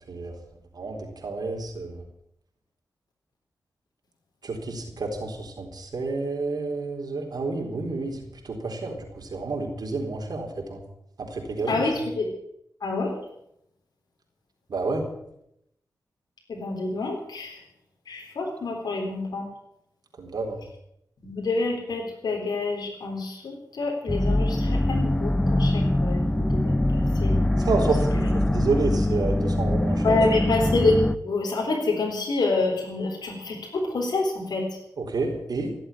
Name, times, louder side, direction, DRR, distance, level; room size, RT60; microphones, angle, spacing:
voice 1, 0.1-0.4 0.7-2.0 4.4-8.2 8.4-10.8 11.2-11.8 14.7-15.0 20.2-20.6 27.6-30.2 35.0-35.8, right 3 dB, 70° right, 2 dB, 4.0 m, -29 dB
voice 2, 11.7-12.3 12.8-13.2 16.5-17.6 18.1-19.5 21.2-27.6 28.2-28.3 30.0-34.8, left 3 dB, 75° left, 0 dB, 3.8 m, -27 dB
sound 1, 24.1-31.2, left 1 dB, 10° left, 0.8 m, -23 dB
17.0 x 8.0 x 9.9 m, 0.78 s
cardioid pair, 60°, 7 cm